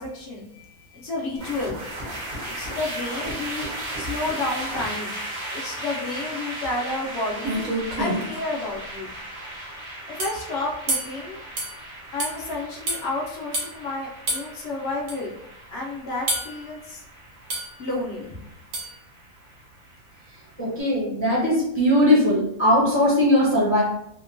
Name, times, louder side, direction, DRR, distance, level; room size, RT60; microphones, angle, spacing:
voice 1, 0.0-1.8 2.5-3.7 4.0-7.6 8.0-9.1 9.4-9.8 10.1-11.4 12.1-15.3 15.7-17.0 17.8-18.4, left 2 dB, 60° left, -2 dB, 0.7 m, -31 dB
sound 1, 1.4-20.6, right 1 dB, 50° right, 0.9 m, -36 dB
sound 2, 7.1-7.2 7.4-8.4 10.2-10.4 10.9-11.2 11.6-11.7 12.2-12.3 12.9-13.0 13.5-13.7 14.3-14.5 15.1-15.2 16.3-16.6 17.5-17.8 18.7-19.0, right 1 dB, 75° right, 1.2 m, -27 dB
voice 2, 20.6-23.8, left 1 dB, 15° left, -7 dB, 0.6 m, -19 dB
2.8 x 2.2 x 2.5 m, 0.77 s
omnidirectional pair, 1.5 m